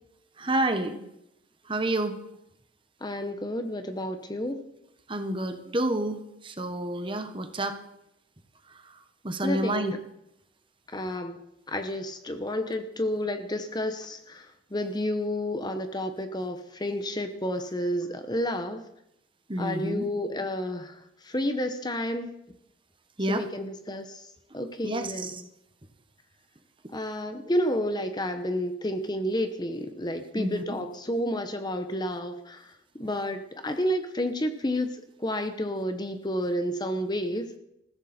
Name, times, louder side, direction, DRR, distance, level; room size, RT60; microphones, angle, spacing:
voice 1, 0.4-1.0 1.7-2.2 5.1-7.8 9.2-9.9 19.5-20.1 23.2-23.4 24.8-25.4 30.3-30.8, right 1 dB, 25° right, 8 dB, 1.3 m, -29 dB
voice 2, 3.0-4.6 9.4-10.0 10.9-11.4 11.7-18.8 19.6-22.3 23.3-24.2 24.5-25.5 26.9-32.6 33.0-37.6, left 1 dB, 20° left, 8 dB, 1.0 m, -30 dB
20.0 x 15.5 x 4.4 m, 0.82 s
head